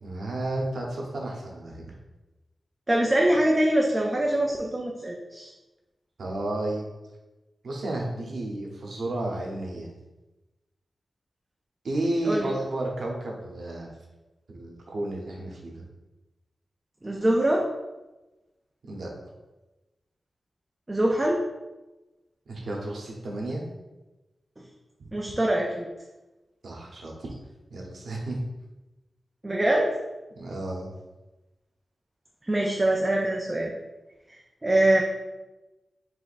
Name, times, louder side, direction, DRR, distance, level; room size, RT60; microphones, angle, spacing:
voice 1, 0.0-1.8 6.2-6.9 7.6-9.9 11.8-13.9 14.5-15.8 18.9-19.1 22.5-23.6 25.0-25.1 26.6-27.3 27.7-28.4 30.3-30.9, right 1 dB, 70° right, -1 dB, 0.9 m, -32 dB
voice 2, 2.9-5.5 12.2-12.5 17.0-17.7 20.9-21.4 25.1-25.9 29.4-29.9 32.5-33.7 34.3-35.0, right 1 dB, 15° right, -1 dB, 0.4 m, -23 dB
5.0 x 3.4 x 2.5 m, 1.1 s
wide cardioid pair, 175°, 0 cm